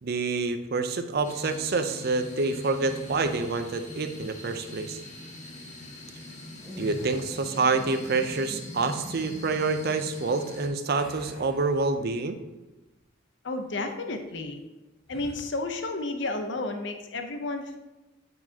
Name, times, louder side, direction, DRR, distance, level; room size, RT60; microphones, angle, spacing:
voice 1, 0.0-5.0 6.8-12.4, right 3 dB, 55° right, 8 dB, 0.6 m, -27 dB
sound 1, 1.2-10.7, left 1 dB, 40° left, 1.3 m, -42 dB
sound 2, 3.0-3.6 6.5-7.6 10.9-12.3 12.8-13.0 15.0-15.5, equal, ahead, 1.2 m, -45 dB
voice 2, 13.4-14.6 15.1-17.8, left 2 dB, 65° left, 6 dB, 0.7 m, -32 dB
9.6 x 4.7 x 2.8 m, 1.1 s
head